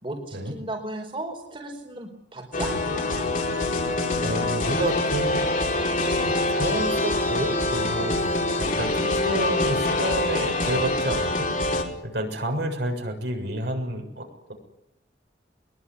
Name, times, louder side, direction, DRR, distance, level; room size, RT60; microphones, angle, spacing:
voice 1, 0.0-3.6, right 2 dB, 30° right, 2 dB, 4.7 m, -36 dB
sound 1, 2.5-11.8, left 2 dB, 50° left, 4.9 m, -25 dB
voice 2, 4.2-5.4 5.7-14.5, right 1 dB, 65° right, 3 dB, 7.0 m, -30 dB
22.5 x 22.5 x 9.9 m, 0.81 s
head